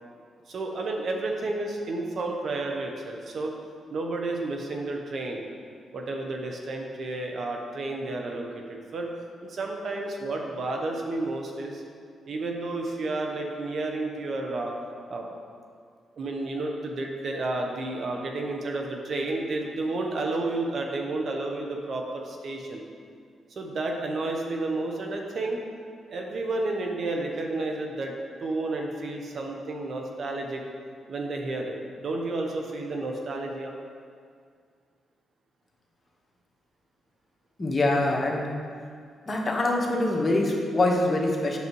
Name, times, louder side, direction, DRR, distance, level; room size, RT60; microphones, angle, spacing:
voice 1, 0.5-3.5 3.9-5.4 5.9-9.1 9.4-11.8 12.3-14.7 15.1-15.3 16.2-22.8 23.6-25.6 26.1-28.1 28.4-30.6 31.1-33.7, right 2 dB, 60° right, 1 dB, 1.0 m, -31 dB
voice 2, 37.6-38.5 39.3-41.6, left 2 dB, 35° left, -1 dB, 1.3 m, -24 dB
8.3 x 6.5 x 3.2 m, 2.2 s
supercardioid pair, 60°, 0 cm